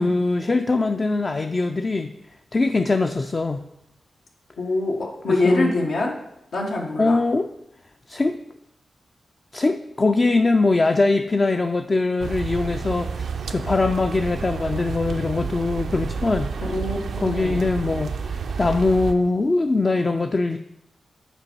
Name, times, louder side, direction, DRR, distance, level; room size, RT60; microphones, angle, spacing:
voice 1, 0.0-2.1 2.5-3.6 5.3-5.7 7.0-7.5 8.1-8.4 9.5-16.5 17.2-20.6, left 3 dB, 35° left, 6 dB, 0.3 m, -22 dB
voice 2, 4.6-6.2 6.5-7.2 16.7-17.6, left 2 dB, 85° left, -2 dB, 1.1 m, -24 dB
sound 1, 12.2-19.1, right 5 dB, 75° right, 0.4 m, -30 dB
6.7 x 4.5 x 4.4 m, 0.82 s
cardioid pair, 70°, 0 cm